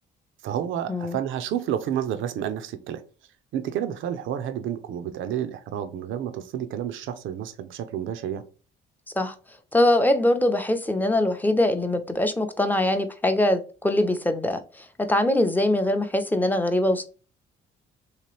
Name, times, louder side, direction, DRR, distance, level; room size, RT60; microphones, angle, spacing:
voice 1, 0.4-3.0 3.5-8.4, right 10 dB, 80° right, 0.5 m, -30 dB
voice 2, 9.7-17.1, left 1 dB, 10° left, 0.5 m, -23 dB
3.2 x 2.9 x 3.0 m
cardioid pair, 90°, 20 cm